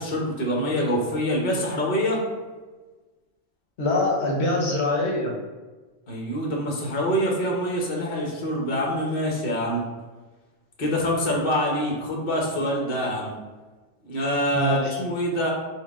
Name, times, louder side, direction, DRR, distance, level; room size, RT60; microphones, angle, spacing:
voice 1, 0.0-2.2 6.1-9.8 10.8-13.3 14.0-15.5, equal, 60° left, -2 dB, 1.2 m, -25 dB
voice 2, 3.8-5.3 14.5-15.0, left 1 dB, 85° left, -2 dB, 1.1 m, -24 dB
6.1 x 2.1 x 3.5 m, 1.3 s
omnidirectional pair, 1.1 m